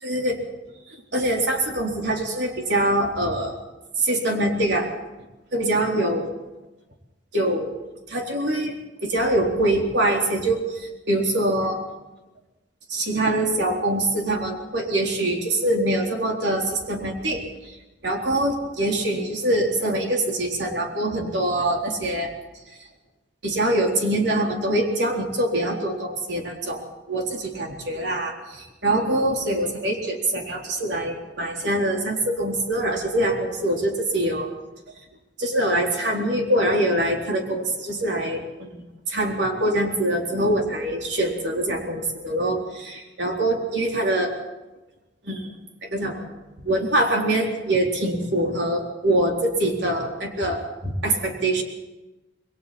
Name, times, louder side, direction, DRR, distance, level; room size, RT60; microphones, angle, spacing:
voice 1, 0.0-0.4 1.1-3.5 4.0-4.9 5.5-6.4 7.3-7.8 8.1-8.7 9.0-11.8 12.9-17.4 18.0-22.3 23.4-34.5 35.4-38.7 39.1-44.3 45.2-45.5 45.9-46.2 46.6-51.6, right 1 dB, 75° right, 0 dB, 4.0 m, -24 dB
28.0 x 21.5 x 4.4 m, 1.0 s
head